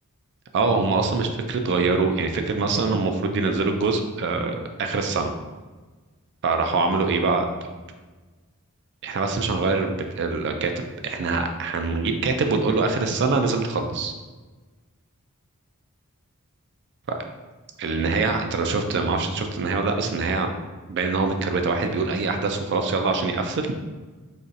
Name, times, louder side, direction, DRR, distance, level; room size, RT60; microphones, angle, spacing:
voice 1, 0.5-5.3 6.4-7.5 9.0-14.1 17.1-17.2 17.8-20.5 20.9-23.8, right 3 dB, 50° right, 6 dB, 0.4 m, -24 dB
4.0 x 2.9 x 2.6 m, 1.3 s
head